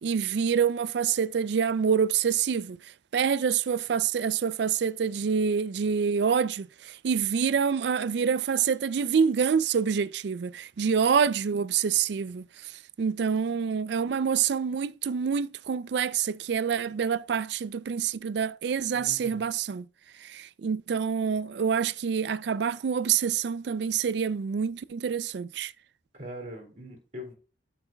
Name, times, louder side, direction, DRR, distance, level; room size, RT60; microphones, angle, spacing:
voice 1, 0.0-2.8 3.1-12.7 13.0-19.9 20.2-25.7, right 7 dB, 60° right, 0.4 m, -27 dB
voice 2, 18.9-19.5 26.1-27.4, equal, 40° right, 3.3 m, -42 dB
12.0 x 6.0 x 2.3 m
head